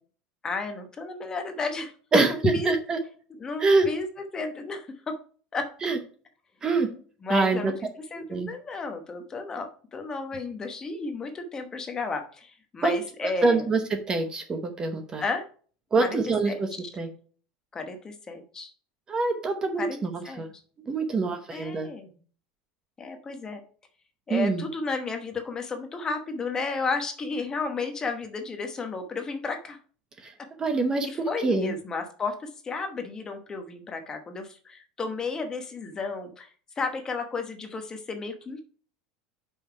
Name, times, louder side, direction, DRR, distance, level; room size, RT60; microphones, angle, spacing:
voice 1, 0.4-2.7 3.4-4.1 4.3-5.2 5.5-5.7 7.2-7.7 8.1-13.7 15.2-15.5 16.0-16.2 16.5-16.9 17.7-18.7 19.8-20.0 20.2-20.4 21.5-22.2 23.0-23.6 24.3-29.8 31.0-36.5 36.8-38.6, left 4 dB, 20° left, 6 dB, 1.0 m, -32 dB
voice 2, 2.1-3.0 3.6-3.9 5.8-6.0 6.6-6.9 7.3-7.7 8.3-8.5 12.8-12.9 13.4-15.2 15.9-16.7 17.0-17.1 19.1-20.5 20.9-21.9 24.3-24.6 30.2-30.3 30.6-31.1 31.4-31.7, right 3 dB, 20° right, 7 dB, 0.9 m, -25 dB
5.6 x 5.4 x 4.6 m, 0.43 s
supercardioid pair, 155°, 4 cm